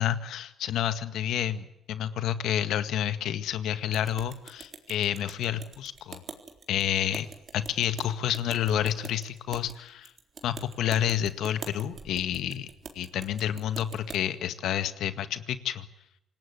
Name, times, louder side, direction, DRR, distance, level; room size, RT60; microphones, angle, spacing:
voice 1, 0.0-6.2 6.7-7.3 7.5-10.1 10.4-12.7 13.0-15.9, left 10 dB, 80° left, 10 dB, 1.9 m, -29 dB
sound 1, 3.9-14.2, right 5 dB, 50° right, 3.8 m, -45 dB
27.0 x 18.5 x 9.6 m, 0.82 s
cardioid pair, 90°, 0 cm